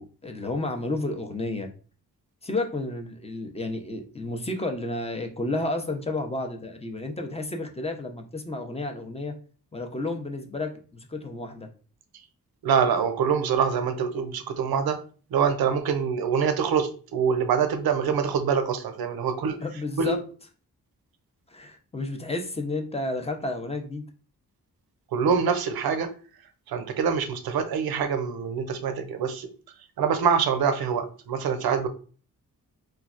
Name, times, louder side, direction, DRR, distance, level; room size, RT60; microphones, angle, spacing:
voice 1, 0.0-1.7 2.4-9.3 9.7-11.7 19.6-20.2 21.5-24.0, left 2 dB, 15° left, 4 dB, 0.6 m, -31 dB
voice 2, 12.6-15.0 15.3-19.6 20.0-20.1 25.1-26.1 26.7-29.5 30.0-31.9, right 6 dB, 85° right, 8 dB, 0.5 m, -25 dB
3.1 x 2.3 x 2.4 m, 0.39 s
cardioid pair, 55°, 36 cm